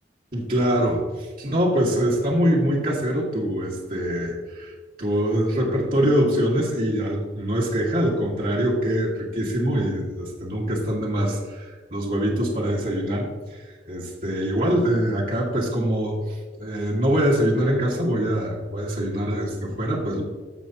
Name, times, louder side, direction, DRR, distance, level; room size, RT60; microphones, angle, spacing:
voice 1, 0.3-4.7 5.0-13.6 13.9-20.2, equal, 50° right, -4 dB, 2.0 m, -24 dB
15.0 x 5.1 x 3.0 m, 1.4 s
head